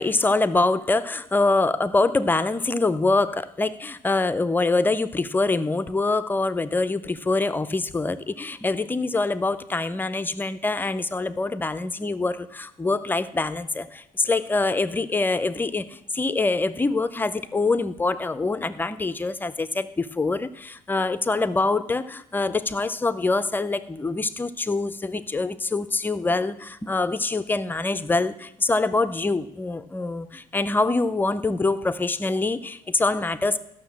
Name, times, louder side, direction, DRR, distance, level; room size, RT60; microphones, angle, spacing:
voice 1, 0.0-33.6, left 3 dB, 15° left, 12 dB, 0.5 m, -24 dB
12.5 x 6.4 x 7.4 m, 0.80 s
cardioid pair, 140°, 15 cm